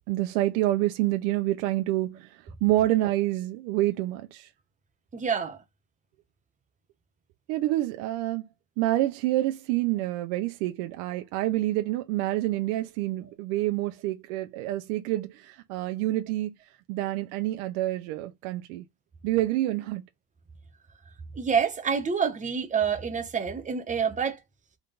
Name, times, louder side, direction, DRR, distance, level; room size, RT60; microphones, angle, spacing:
voice 1, 0.1-4.5 7.5-8.4 8.8-16.5 16.9-18.8 19.2-20.0, right 16 dB, 70° right, 0.8 m, -27 dB
voice 2, 5.1-5.6 21.4-24.4, right 6 dB, 15° right, 0.8 m, -27 dB
3.8 x 3.3 x 3.9 m
supercardioid pair, 135°, 50 cm